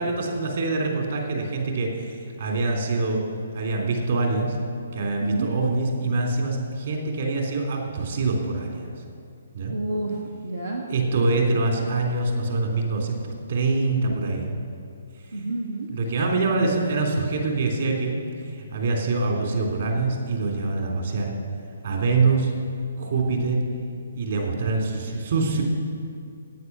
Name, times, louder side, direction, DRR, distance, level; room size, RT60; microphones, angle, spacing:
voice 1, 0.0-3.2 3.5-4.6 4.9-8.9 9.5-9.7 10.9-14.5 15.9-18.2 18.5-21.3 21.8-22.5 23.0-23.6 24.1-25.6, right 3 dB, 50° right, 0 dB, 3.4 m, -25 dB
voice 2, 5.2-5.5 9.7-10.8 15.3-15.9, right 2 dB, 80° right, -2 dB, 1.8 m, -29 dB
16.5 x 9.3 x 6.2 m, 2.5 s
figure-of-eight pair, 130°, 0 cm